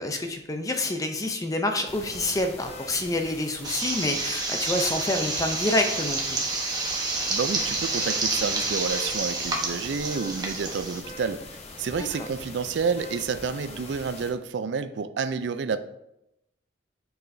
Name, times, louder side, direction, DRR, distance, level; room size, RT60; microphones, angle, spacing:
voice 1, 0.0-6.4 12.0-12.1, left 2 dB, 20° left, 5 dB, 0.5 m, -27 dB
sound 1, 1.9-14.3, left 2 dB, 35° left, 0.8 m, -43 dB
sound 2, 3.6-11.0, right 3 dB, 20° right, 1.0 m, -29 dB
voice 2, 7.3-11.4 11.8-15.8, right 5 dB, 70° right, 12 dB, 0.4 m, -29 dB
9.4 x 4.7 x 2.6 m, 0.85 s
head